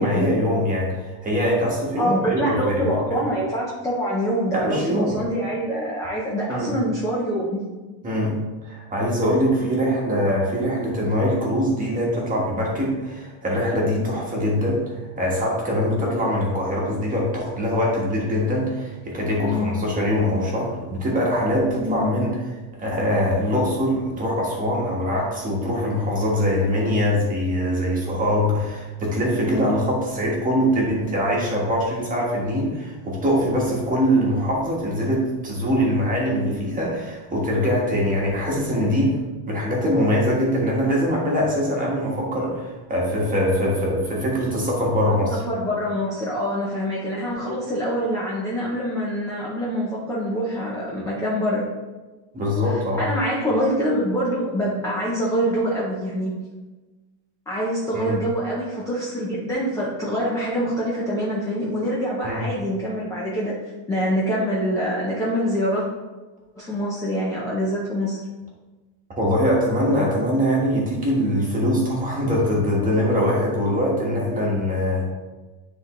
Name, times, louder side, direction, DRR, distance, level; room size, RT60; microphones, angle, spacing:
voice 1, 0.0-2.8 3.1-3.2 4.5-5.2 6.5-6.7 8.0-8.4 8.6-22.3 22.8-39.2 39.5-45.4 52.3-53.1 57.9-58.2 62.2-62.4 69.2-75.1, equal, 15° right, -3 dB, 1.3 m, -23 dB
voice 2, 2.0-7.6 19.5-19.7 21.8-22.2 29.4-29.7 45.3-51.6 52.6-56.3 57.5-63.5 63.9-65.8 66.6-68.2, equal, 5° left, -5 dB, 0.5 m, -25 dB
9.6 x 3.7 x 3.0 m, 1.2 s
cardioid pair, 175°, 49 cm